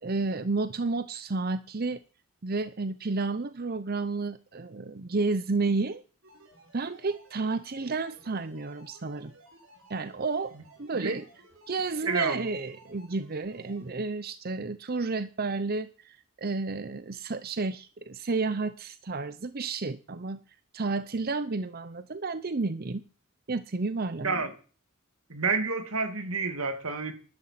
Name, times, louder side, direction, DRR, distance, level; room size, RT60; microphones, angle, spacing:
voice 1, 0.0-2.0 2.4-6.0 6.7-9.3 9.9-10.5 10.8-11.3 11.7-20.4 20.7-23.0 23.5-24.4, right 3 dB, 45° right, 0.7 m, -31 dB
sound 1, 6.2-13.9, right 2 dB, 70° right, 6.2 m, -56 dB
voice 2, 12.0-12.5 24.2-24.5 25.3-27.1, right 4 dB, 85° right, 2.5 m, -29 dB
12.0 x 12.0 x 7.7 m
head